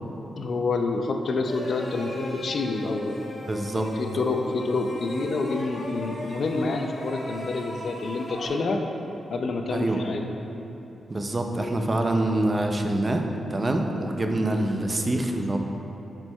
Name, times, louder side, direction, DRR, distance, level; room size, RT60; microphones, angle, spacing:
voice 1, 0.4-3.2 3.7-8.8 9.3-10.2, left 3 dB, 50° left, 4 dB, 0.4 m, -28 dB
sound 1, 1.4-8.5, left 1 dB, 80° left, 1.2 m, -38 dB
voice 2, 3.5-3.9 9.7-10.0 11.1-15.6, right 1 dB, 25° right, 4 dB, 0.4 m, -25 dB
9.4 x 4.4 x 2.2 m, 3.0 s
wide cardioid pair, 155°, 0 cm